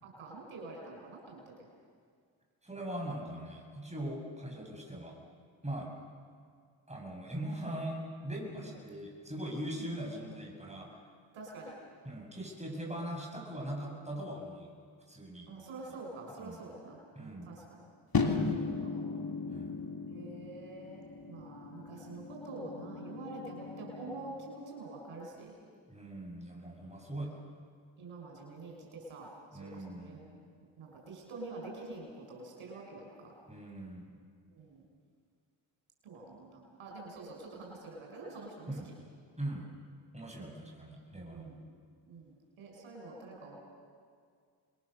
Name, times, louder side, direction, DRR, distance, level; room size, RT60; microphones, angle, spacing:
voice 1, 0.0-1.4 8.5-8.7 9.8-10.3 11.3-11.7 15.5-17.8 18.8-19.1 20.1-21.0 21.3-25.5 28.0-29.3 29.6-30.2 30.8-33.3 34.5-34.8 36.0-38.9 41.3-41.6 42.1-43.6, right 2 dB, 85° right, -1 dB, 5.5 m, -46 dB
voice 2, 2.6-5.2 5.6-5.9 6.9-11.0 12.0-14.7 15.1-15.5 16.4-16.6 17.2-17.5 18.3-18.7 19.5-19.8 25.9-27.4 29.5-30.2 33.5-34.1 38.7-38.9 39.4-39.7 40.1-41.6, right 1 dB, 15° right, 0 dB, 7.2 m, -41 dB
sound 1, 18.1-24.4, left 4 dB, 45° left, 3.0 m, -36 dB
27.5 x 21.5 x 6.7 m, 2.1 s
supercardioid pair, 50°, 48 cm